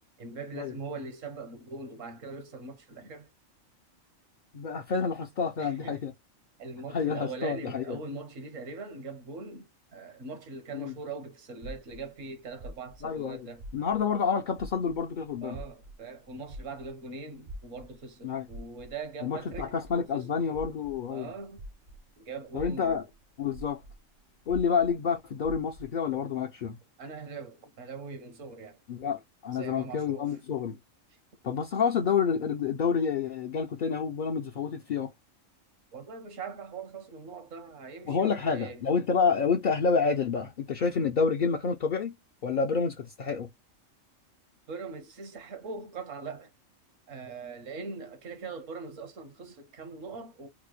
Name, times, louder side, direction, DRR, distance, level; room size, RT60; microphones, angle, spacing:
voice 1, 0.2-3.3 5.6-6.0 6.6-13.6 15.4-20.3 21.1-21.6 22.2-23.0 27.0-28.8 29.5-30.4 35.9-38.8 44.7-46.5 47.1-50.5, right 4 dB, 70° right, 1.3 m, -41 dB
voice 2, 4.5-6.1 6.9-8.0 10.7-10.9 13.0-13.4 13.7-15.6 18.2-18.5 19.2-21.3 22.5-23.0 23.4-23.8 24.5-26.8 28.9-30.8 31.4-35.1 38.1-42.1 42.4-43.5, left 6 dB, 60° left, 0.5 m, -28 dB
sound 1, 11.6-14.3 14.5-22.1 22.5-26.0, right 1 dB, 50° right, 0.7 m, -46 dB
3.6 x 2.1 x 3.1 m
omnidirectional pair, 1.4 m